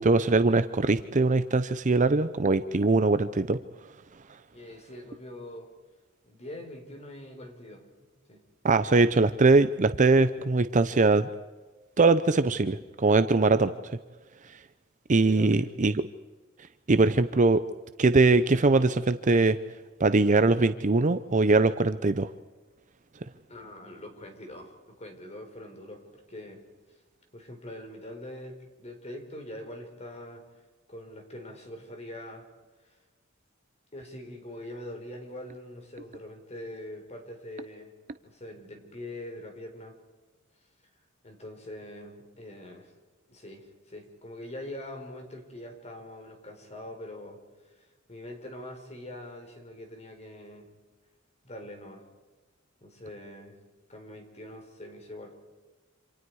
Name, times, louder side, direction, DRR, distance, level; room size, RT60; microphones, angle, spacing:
voice 1, 0.0-3.6 8.6-11.3 12.0-13.7 15.1-15.9 16.9-17.6 18.0-19.6 20.0-22.3, right 3 dB, 40° right, 11 dB, 0.7 m, -22 dB
voice 2, 4.5-5.7 6.2-7.8 8.3-8.5 13.4-13.6 15.2-15.7 17.0-17.1 23.5-26.6 27.3-30.4 30.9-32.5 32.8-33.0 33.9-38.0 38.2-40.0 41.2-42.9 43.3-50.7 51.4-52.0 52.8-53.6 53.9-55.4, left 1 dB, 35° left, 4 dB, 4.3 m, -43 dB
28.0 x 27.0 x 4.8 m, 1.3 s
head